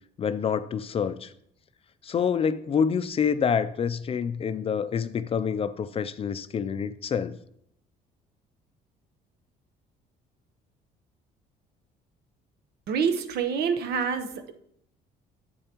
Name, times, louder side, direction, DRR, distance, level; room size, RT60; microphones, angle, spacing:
voice 1, 0.2-1.3 2.0-7.4, left 7 dB, 35° left, 13 dB, 0.4 m, -27 dB
voice 2, 12.9-14.5, right 6 dB, 70° right, 8 dB, 0.9 m, -27 dB
10.0 x 8.0 x 2.9 m, 0.72 s
cardioid pair, 110°, 17 cm